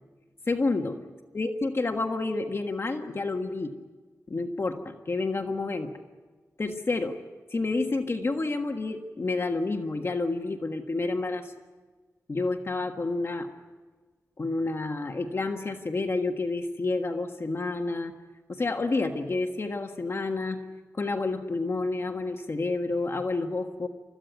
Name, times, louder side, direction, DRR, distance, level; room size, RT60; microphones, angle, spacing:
voice 1, 0.5-1.0 1.3-3.7 4.3-5.9 6.6-7.2 7.5-11.5 12.3-13.5 14.4-18.1 18.5-20.6 20.9-23.9, left 3 dB, 45° left, 4 dB, 1.6 m, -29 dB
29.5 x 15.0 x 9.4 m, 1.4 s
wide cardioid pair, 90°, 6 cm